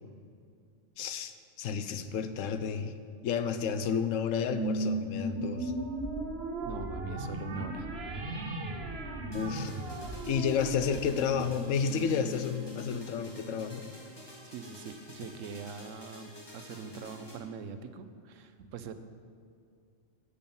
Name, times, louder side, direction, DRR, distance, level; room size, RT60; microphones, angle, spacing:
voice 1, 1.0-2.9 3.2-5.7 9.3-9.8 10.3-13.9, left 7 dB, 80° left, 10 dB, 1.0 m, -31 dB
sound 1, 4.5-13.3, right 2 dB, 55° right, 1.2 m, -36 dB
voice 2, 6.6-7.9 14.4-18.9, right 6 dB, 80° right, 10 dB, 1.0 m, -43 dB
sound 2, 9.3-17.4, equal, 20° left, 1.3 m, -50 dB
8.5 x 7.1 x 5.3 m, 2.3 s
omnidirectional pair, 1.3 m